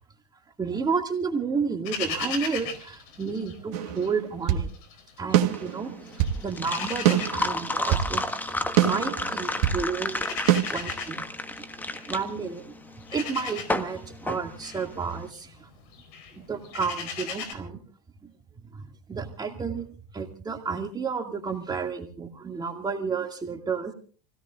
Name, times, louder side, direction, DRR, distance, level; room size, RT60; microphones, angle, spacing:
voice 1, 0.6-4.7 5.2-5.9 6.4-8.2 8.5-10.2 10.7-11.2 12.1-12.6 13.1-15.7 16.4-17.8 18.7-19.9 20.1-23.9, right 5 dB, 20° right, 3 dB, 2.3 m, -31 dB
sound 1, 1.8-4.1 4.4-5.7 6.1-17.5, left 6 dB, 65° left, 4.4 m, -38 dB
sound 2, 3.7-4.7 5.3-6.4 7.0-8.1 8.8-9.8 10.5-10.6, right 11 dB, 70° right, 1.9 m, -24 dB
sound 3, 5.3-15.2, left 2 dB, 10° left, 1.5 m, -32 dB
28.5 x 17.0 x 2.5 m, 0.40 s
hypercardioid pair, 100°, 20 cm